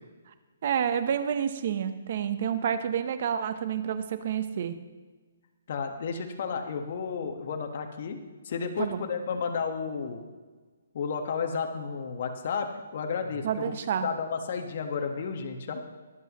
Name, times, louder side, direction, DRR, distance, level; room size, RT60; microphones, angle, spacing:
voice 1, 0.6-4.7 8.8-9.0 13.4-14.1, right 8 dB, 50° right, 10 dB, 1.0 m, -29 dB
voice 2, 5.7-8.2 8.4-10.3 10.9-13.7 14.0-15.8, left 5 dB, 50° left, 4 dB, 1.5 m, -32 dB
22.5 x 8.0 x 3.1 m, 1.4 s
hypercardioid pair, 160°, 0 cm